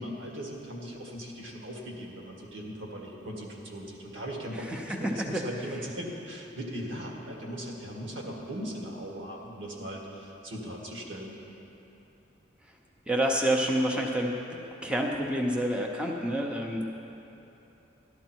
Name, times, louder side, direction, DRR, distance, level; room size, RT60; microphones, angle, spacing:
voice 1, 0.0-11.4, equal, 90° right, -1 dB, 1.9 m, -39 dB
voice 2, 4.5-5.4 13.1-16.8, right 1 dB, 5° right, 0 dB, 0.7 m, -28 dB
12.5 x 12.0 x 4.5 m, 2.9 s
head